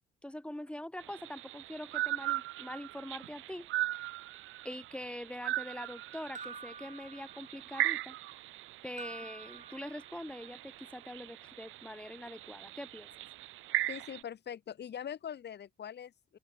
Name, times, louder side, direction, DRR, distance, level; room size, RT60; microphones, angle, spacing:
voice 1, 0.2-3.7 4.6-8.2 8.8-13.1, left 1 dB, 5° left, 1.8 m, -44 dB
sound 1, 1.0-14.2, right 16 dB, 90° right, 1.6 m, -39 dB
sound 2, 6.3-7.8 9.0-10.4, right 5 dB, 35° right, 3.9 m, -49 dB
voice 2, 13.9-16.4, left 9 dB, 60° left, 4.5 m, -42 dB
open air
cardioid pair, 90°, 20 cm